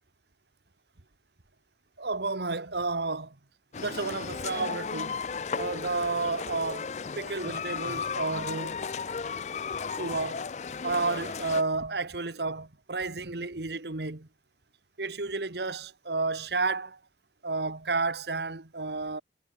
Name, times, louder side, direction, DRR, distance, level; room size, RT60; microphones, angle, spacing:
voice 1, 2.0-3.4 3.8-5.2 5.5-6.9 7.2-8.9 10.0-10.4 10.8-14.3 15.0-17.0 17.4-19.2, right 3 dB, 70° right, 1.6 m, -31 dB
sound 1, 3.7-11.6, left 5 dB, 40° left, 0.4 m, -35 dB
head